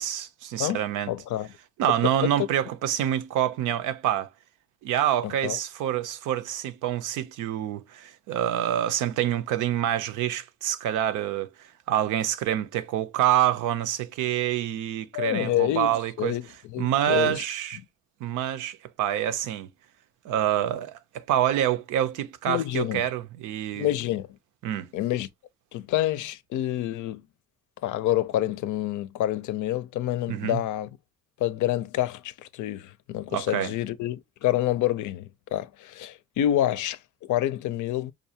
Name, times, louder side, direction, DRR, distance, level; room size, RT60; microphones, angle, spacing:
voice 1, 0.0-1.1 1.8-4.3 4.8-16.4 16.8-17.8 18.2-19.7 20.2-23.9 24.6-24.9 30.3-30.6 33.3-33.7, right 11 dB, 90° right, 0.6 m, -27 dB
voice 2, 1.1-1.5 1.9-2.0 2.2-2.5 5.2-5.6 15.1-15.9 16.2-17.4 22.5-23.0 23.7-24.4 24.9-25.3 25.7-27.3 27.8-30.9 31.4-38.1, left 13 dB, 75° left, 0.5 m, -28 dB
5.1 x 2.3 x 2.7 m
cardioid pair, 90°, 30 cm